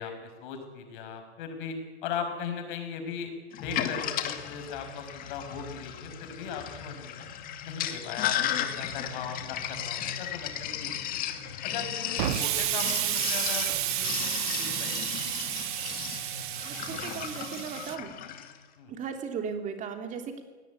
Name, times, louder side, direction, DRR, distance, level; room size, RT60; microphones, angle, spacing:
voice 1, 0.0-3.3 3.6-7.3 7.6-10.9 11.6-15.0 18.8-18.9, left 6 dB, 50° left, 6 dB, 6.0 m, -38 dB
Sink (filling or washing), 3.5-18.6, left 10 dB, 25° left, 2.2 m, -35 dB
Explosion, 12.2-18.0, right 14 dB, 45° right, 1.7 m, -31 dB
voice 2, 16.6-18.1 18.9-20.4, right 6 dB, 20° right, 6 dB, 3.1 m, -36 dB
22.5 x 18.0 x 9.8 m, 1.3 s
hypercardioid pair, 140°, 33 cm